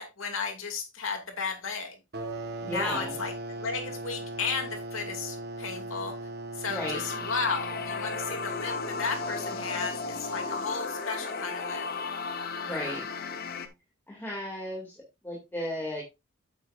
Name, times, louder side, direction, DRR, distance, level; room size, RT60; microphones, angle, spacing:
voice 1, 0.0-2.0 2.6-6.1 6.6-11.9 12.7-13.0, left 5 dB, 85° left, 4 dB, 2.5 m, -34 dB
sound 1, 2.1-10.5, right 2 dB, 55° right, 1.3 m, -39 dB
voice 2, 2.6-3.1 6.7-7.0 12.6-13.0 14.1-14.9 15.2-16.0, left 1 dB, 10° left, -3 dB, 2.5 m, -34 dB
sound 2, 6.7-13.7, left 4 dB, 50° left, 1.0 m, -35 dB
8.8 x 8.7 x 2.5 m, 0.24 s
head